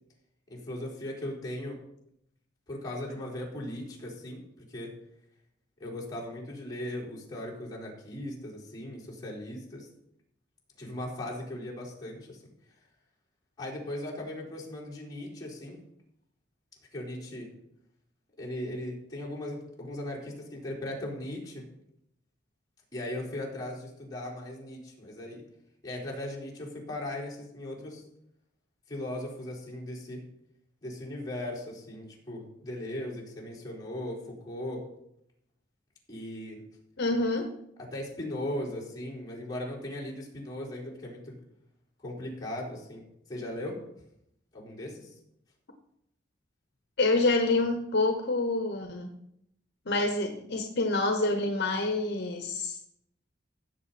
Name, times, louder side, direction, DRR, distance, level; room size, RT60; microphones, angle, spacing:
voice 1, 0.5-1.8 2.7-4.4 4.7-4.9 5.8-9.9 10.8-12.4 13.6-15.8 16.9-17.5 18.4-21.7 22.9-25.4 25.8-28.0 28.9-30.2 30.8-34.8 36.1-36.6 37.9-41.4 42.0-43.0 43.3-43.8 44.5-45.1, left 1 dB, 20° left, -6 dB, 4.3 m, -38 dB
voice 2, 37.0-37.5 47.0-49.2 49.9-52.8, left 2 dB, 60° left, 5 dB, 1.0 m, -27 dB
16.0 x 7.3 x 4.2 m, 0.78 s
head